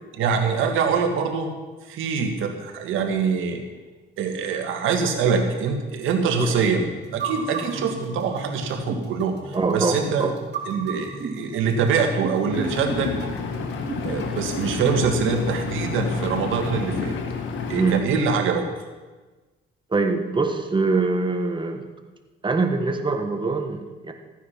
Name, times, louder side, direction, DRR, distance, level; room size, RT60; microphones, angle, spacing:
voice 1, 0.2-1.5 1.9-3.6 4.2-6.8 7.1-10.3 10.7-13.1 14.0-17.1 17.7-18.6, right 5 dB, 90° right, 4 dB, 1.9 m, -24 dB
voice 2, 6.4-6.7 9.5-10.3 17.7-18.0 19.9-21.8 22.4-24.1, right 3 dB, 25° right, 5 dB, 1.7 m, -24 dB
sound 1, 7.0-15.5, right 4 dB, 60° right, 3.5 m, -34 dB
Engine, 12.5-18.0, left 5 dB, 75° left, 1.5 m, -30 dB
14.5 x 9.4 x 5.8 m, 1.3 s
cardioid pair, 90°, 20 cm